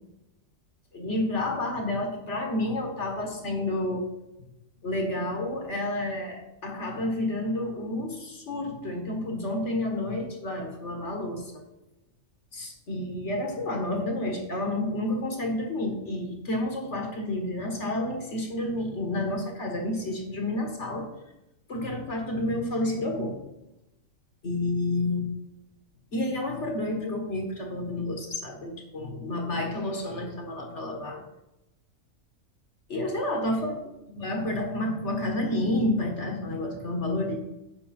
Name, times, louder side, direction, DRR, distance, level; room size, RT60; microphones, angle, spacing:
voice 1, 0.9-4.1 4.8-11.5 12.5-21.1 21.7-23.4 24.4-25.3 26.1-31.2 32.9-33.8 34.2-37.4, left 1 dB, 60° left, 2 dB, 1.8 m, -30 dB
9.9 x 6.9 x 4.3 m, 0.93 s
omnidirectional pair, 1.4 m